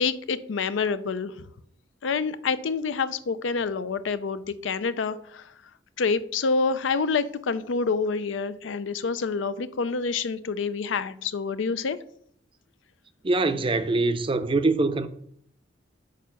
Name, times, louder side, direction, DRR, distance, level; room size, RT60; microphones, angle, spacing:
voice 1, 0.0-1.4 2.0-5.4 6.0-12.0, left 4 dB, 85° left, 0.5 m, -27 dB
voice 2, 13.2-15.1, right 3 dB, 30° right, 0.5 m, -23 dB
6.5 x 5.0 x 5.7 m
head